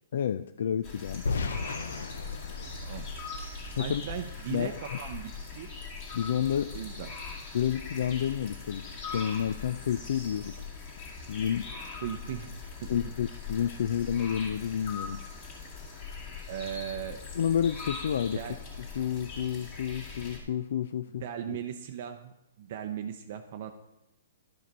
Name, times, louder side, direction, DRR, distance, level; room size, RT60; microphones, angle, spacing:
voice 1, 0.1-1.3 3.7-4.0 4.5-4.8 6.1-6.8 7.5-10.6 11.2-11.7 12.9-15.2 17.3-18.4 19.0-21.6, left 9 dB, 60° left, 11 dB, 0.3 m, -30 dB
sound 1, 0.8-20.4, left 4 dB, 35° left, 2.3 m, -41 dB
sound 2, 1.3-4.2, left 4 dB, 90° left, 0.7 m, -35 dB
sound 3, 2.6-9.2 9.4-9.5, right 5 dB, 85° right, 1.1 m, -52 dB
voice 2, 3.8-5.7 6.7-7.1 12.0-12.6 12.8-13.0 16.5-17.2 18.3-18.6 21.2-23.7, right 9 dB, 45° right, 5 dB, 0.6 m, -38 dB
11.5 x 5.1 x 5.3 m, 0.94 s
hypercardioid pair, 160°, 0 cm